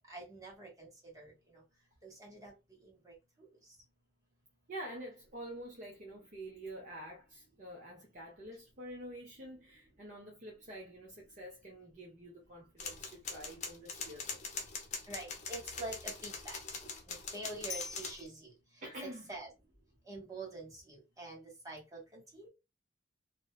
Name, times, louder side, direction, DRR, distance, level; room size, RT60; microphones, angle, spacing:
voice 1, 0.1-1.6 2.0-2.5 2.8-3.5 15.1-18.5 19.3-19.5 20.0-22.5, right 2 dB, 20° right, 1.2 m, -47 dB
voice 2, 4.7-14.7 18.8-19.3, right 1 dB, 45° right, 0.7 m, -47 dB
sound 1, 12.8-18.2, left 4 dB, 40° left, 0.6 m, -42 dB
2.6 x 2.1 x 2.3 m
head